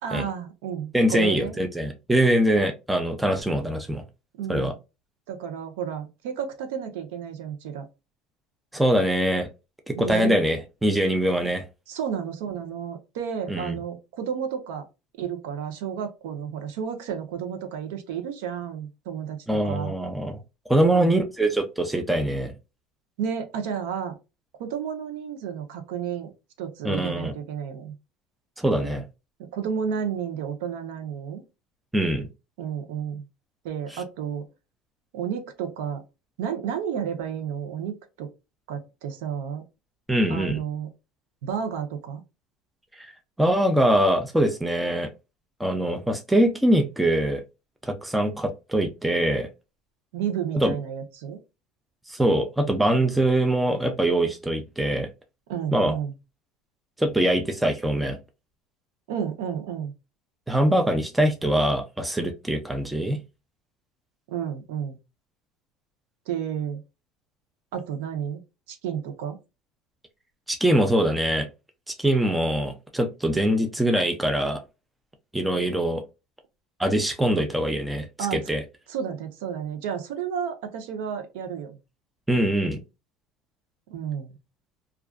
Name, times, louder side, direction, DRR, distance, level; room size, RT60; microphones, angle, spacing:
voice 1, 0.0-1.6 4.4-4.8 5.3-7.9 10.0-10.4 11.9-14.9 15.2-19.9 20.8-21.2 23.2-24.2 24.6-26.3 26.6-27.9 28.8-29.0 29.4-31.4 32.6-33.2 33.6-34.5 35.1-36.0 36.4-38.3 38.7-39.6 40.3-40.9 41.4-42.2 50.1-51.4 55.5-56.1 59.1-59.9 64.3-65.0 66.3-66.8 67.7-68.4 68.7-69.4 78.2-78.4 78.9-81.8 83.9-84.4, right 8 dB, 85° right, 0.6 m, -31 dB
voice 2, 0.9-4.0 4.5-4.7 8.7-9.5 9.9-11.6 13.5-13.8 19.5-20.4 20.7-22.5 26.8-27.3 28.6-29.0 31.9-32.3 33.9-34.0 40.1-40.6 43.0-43.1 43.4-45.1 45.6-47.4 47.8-49.5 50.5-50.7 52.1-55.1 55.7-55.9 57.0-58.2 60.5-63.2 70.5-71.5 71.9-74.6 75.3-76.0 76.8-78.1 78.3-78.6 82.3-82.8, right 1 dB, 5° right, 0.3 m, -23 dB
2.4 x 2.3 x 2.2 m
cardioid pair, 175°, 0 cm